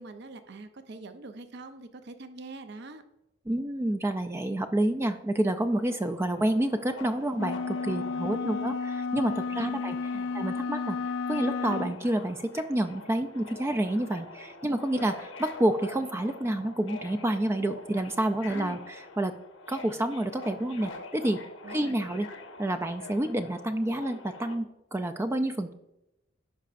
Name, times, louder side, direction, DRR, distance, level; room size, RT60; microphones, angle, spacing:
voice 1, 0.0-3.0 8.3-8.7 9.5-9.8 10.1-10.3 18.5-18.8 21.6-22.0, right 3 dB, 60° right, 9 dB, 0.6 m, -44 dB
voice 2, 3.5-10.0 10.3-11.0 11.3-18.8 19.2-19.3 19.7-21.4 21.7-22.3 22.6-24.7 24.9-25.7, right 1 dB, 15° right, 9 dB, 0.3 m, -28 dB
Subway metro underground, 5.8-24.6, left 3 dB, 85° left, 1.1 m, -45 dB
sound 1, 7.3-12.0, left 4 dB, 65° left, 0.3 m, -32 dB
14.0 x 5.6 x 2.5 m, 0.92 s
head